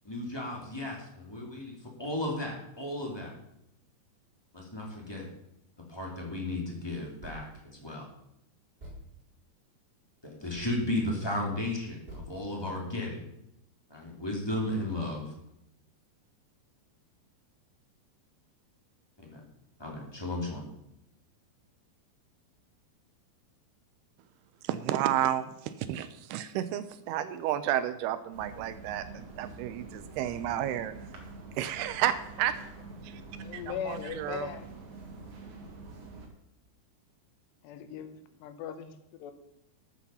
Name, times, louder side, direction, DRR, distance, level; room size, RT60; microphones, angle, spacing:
voice 1, 0.0-3.3 4.5-5.3 5.9-8.1 10.2-13.2 13.9-15.3 19.2-19.4 19.8-20.7, left 1 dB, 10° left, 1.6 m, -34 dB
sound 1, 7.2-7.6 8.1-8.2 8.8-9.2 10.5-10.8 12.1-12.3, equal, 20° right, 4.1 m, -45 dB
voice 2, 24.6-30.9 31.6-32.6 33.0-33.2 33.5-34.5, right 11 dB, 80° right, 2.5 m, -31 dB
sound 2, 28.3-36.3, right 3 dB, 50° right, 3.0 m, -46 dB
voice 3, 33.4-34.7 37.6-39.3, left 9 dB, 85° left, 3.2 m, -39 dB
13.5 x 8.2 x 5.7 m
omnidirectional pair, 4.8 m